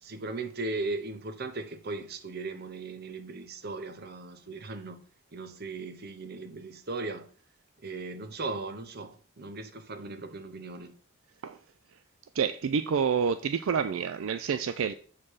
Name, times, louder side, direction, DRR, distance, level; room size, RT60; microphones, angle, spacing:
voice 1, 0.0-5.0 5.3-7.3 7.8-10.9, right 3 dB, 50° right, 0.7 m, -37 dB
voice 2, 12.3-14.9, right 6 dB, 70° right, 0.4 m, -28 dB
7.2 x 4.5 x 4.7 m
head